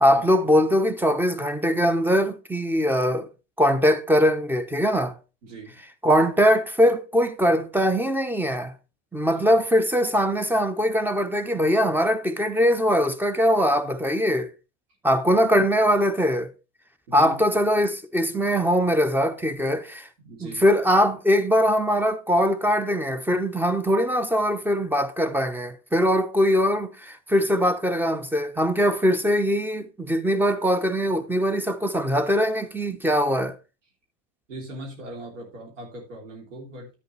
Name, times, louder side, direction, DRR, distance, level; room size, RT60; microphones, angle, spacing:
voice 1, 0.0-3.3 3.6-5.2 6.0-8.7 9.1-14.5 15.0-16.5 17.1-20.1 20.4-33.5, equal, 5° right, 0.8 m, -21 dB
voice 2, 5.4-5.8 9.3-9.4 17.1-17.4 20.2-20.6 34.5-36.9, right 2 dB, 90° right, 3.2 m, -39 dB
10.5 x 8.2 x 3.2 m
hypercardioid pair, 95°, 36 cm